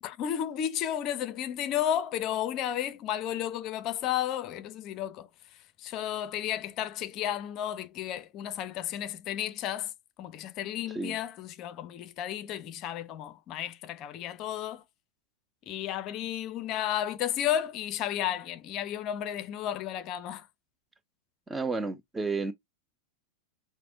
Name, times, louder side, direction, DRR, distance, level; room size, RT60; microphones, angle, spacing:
voice 1, 0.0-5.3 5.8-9.9 10.2-14.8 15.7-20.5, left 11 dB, 35° left, 0.5 m, -33 dB
voice 2, 21.5-22.5, right 3 dB, 10° right, 0.6 m, -31 dB
5.8 x 2.1 x 2.6 m
figure-of-eight pair, 90°, 0 cm